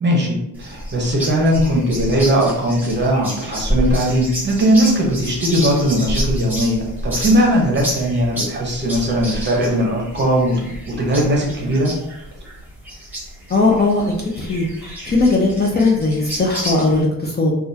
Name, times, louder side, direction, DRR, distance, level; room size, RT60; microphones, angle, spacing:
voice 1, 0.0-11.9, equal, 30° right, -1 dB, 0.7 m, -19 dB
sound 1, 0.5-17.0, equal, 5° right, 1.0 m, -29 dB
voice 2, 13.5-14.0 14.4-17.5, left 3 dB, 30° left, -2 dB, 0.5 m, -18 dB
3.4 x 2.3 x 2.7 m, 0.80 s
wide cardioid pair, 170°, 35 cm